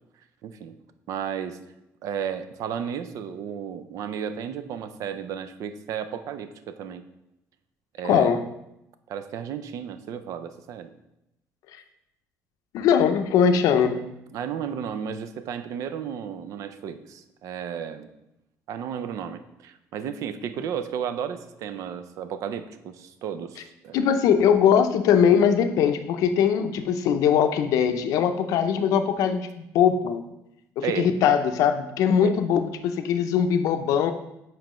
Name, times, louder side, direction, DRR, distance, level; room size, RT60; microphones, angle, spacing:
voice 1, 0.4-0.8 1.1-1.6 2.0-7.1 8.0-8.3 9.1-10.9 14.3-18.1 18.7-24.0 30.8-31.1 32.2-32.3, right 8 dB, 70° right, 11 dB, 0.4 m, -33 dB
voice 2, 8.0-8.4 12.7-14.0 23.9-30.2 30.8-34.1, left 8 dB, 80° left, 8 dB, 0.5 m, -21 dB
7.5 x 4.5 x 3.0 m, 0.87 s
cardioid pair, 120°, 6 cm